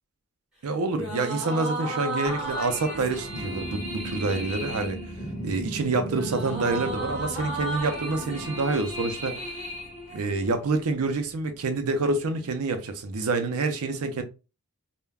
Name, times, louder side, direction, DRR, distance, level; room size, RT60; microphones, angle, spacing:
voice 1, 0.6-5.0 5.4-9.4 10.1-14.2, right 3 dB, 85° right, 0.5 m, -27 dB
sound 1, 0.9-10.6, right 1 dB, 5° right, 1.2 m, -35 dB
sound 2, 2.3-10.0, right 1 dB, 55° left, 0.8 m, -38 dB
3.3 x 2.2 x 2.3 m
head